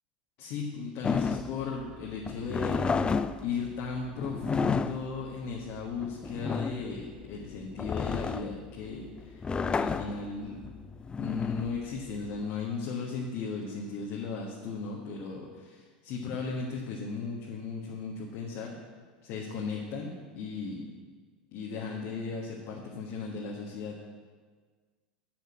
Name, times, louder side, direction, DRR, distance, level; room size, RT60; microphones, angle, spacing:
voice 1, 0.4-3.1 3.4-9.4 9.7-10.6 11.2-18.8 19.2-20.9 21.5-24.0, left 5 dB, 55° left, -2 dB, 1.4 m, -36 dB
sound 1, 1.0-12.4, left 5 dB, 20° left, 0.4 m, -32 dB
8.8 x 6.5 x 6.2 m, 1.5 s
hypercardioid pair, 85°, 5 cm